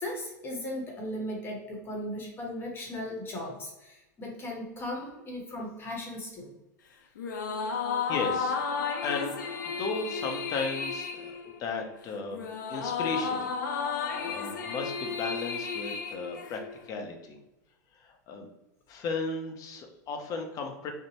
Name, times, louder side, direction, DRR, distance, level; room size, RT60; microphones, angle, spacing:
voice 1, 0.0-6.5, left 1 dB, 25° left, -1 dB, 0.9 m, -37 dB
sound 1, 7.2-16.9, left 5 dB, 85° left, 0.4 m, -33 dB
voice 2, 7.9-8.6 9.0-9.3 9.8-17.4 18.3-18.5 18.9-20.9, left 4 dB, 40° left, 4 dB, 0.6 m, -35 dB
2.7 x 2.0 x 3.0 m, 0.94 s
hypercardioid pair, 115°, 10 cm